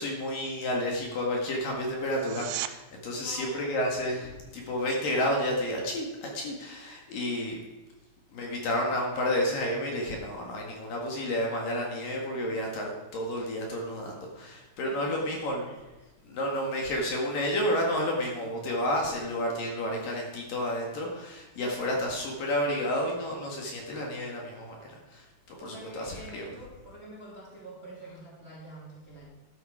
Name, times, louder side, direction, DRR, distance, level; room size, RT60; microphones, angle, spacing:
voice 1, 0.0-7.6 8.3-15.8 16.2-26.5, left 1 dB, 55° left, 0 dB, 3.2 m, -31 dB
sound 1, 2.1-2.8 14.1-14.2, right 14 dB, 85° right, 2.9 m, -35 dB
voice 2, 3.1-3.9 4.1-4.7 8.0-8.1 14.8-15.4 25.6-29.3, right 1 dB, 20° right, -4 dB, 2.3 m, -47 dB
12.5 x 12.0 x 5.0 m, 1.2 s
omnidirectional pair, 5.1 m